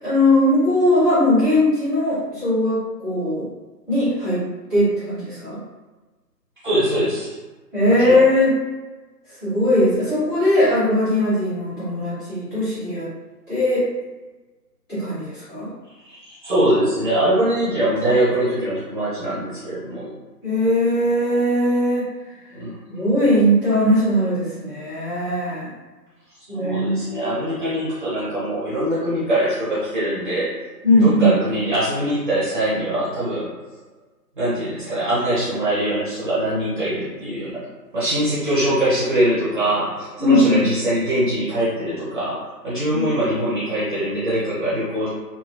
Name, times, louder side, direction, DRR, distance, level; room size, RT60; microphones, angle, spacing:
voice 1, 0.0-3.5 3.9-4.4 4.7-5.6 7.7-8.5 9.4-13.1 13.5-13.8 14.9-15.7 20.4-22.1 22.9-25.7 26.5-27.0 30.8-31.3 40.2-40.7 42.9-43.0, left 1 dB, 10° left, -19 dB, 1.2 m, -19 dB
voice 2, 6.6-7.4 8.0-8.2 16.1-16.2 16.4-20.1 22.5-22.7 26.5-30.5 31.0-33.5 34.4-37.6 37.9-45.1, right 1 dB, 30° right, -10 dB, 1.1 m, -22 dB
3.0 x 2.7 x 2.5 m, 1.2 s
figure-of-eight pair, 150°, 49 cm